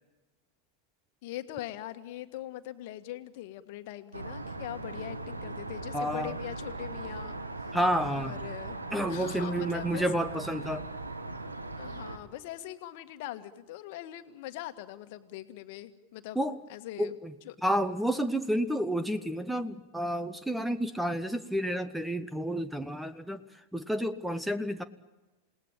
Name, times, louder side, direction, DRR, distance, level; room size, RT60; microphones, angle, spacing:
voice 1, 1.2-7.4 8.1-8.8 9.1-10.0 11.8-16.4 16.7-17.1 17.4-17.6, left 13 dB, 50° left, 10 dB, 1.6 m, -41 dB
sound 1, 4.1-12.2, right 2 dB, 80° right, 1.9 m, -39 dB
voice 2, 5.9-6.4 7.7-8.4 8.9-10.9 16.4-16.6 17.0-17.3 17.6-23.4 23.7-24.8, equal, ahead, 13 dB, 1.0 m, -30 dB
28.5 x 18.5 x 8.9 m, 1.1 s
figure-of-eight pair, 90°, 0 cm